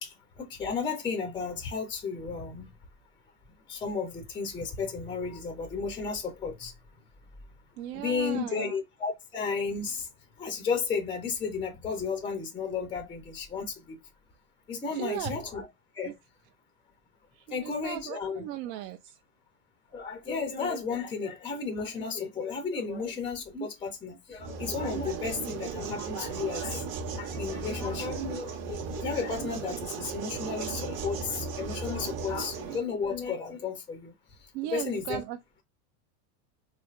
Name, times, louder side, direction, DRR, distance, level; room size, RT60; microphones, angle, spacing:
voice 1, 0.0-2.7 3.7-6.7 7.9-10.1 10.4-14.0 14.7-15.7 15.9-16.1 17.5-18.4 19.9-26.8 27.1-34.1 34.7-35.2, left 5 dB, 10° left, 0.3 m, -33 dB
voice 2, 7.8-8.8 14.9-15.3 16.0-16.1 17.3-19.2 34.5-35.4, right 13 dB, 80° right, 0.6 m, -37 dB
sound 1, 24.4-32.8, right 5 dB, 50° right, 0.8 m, -36 dB
3.7 x 3.2 x 2.3 m
supercardioid pair, 125°, 48 cm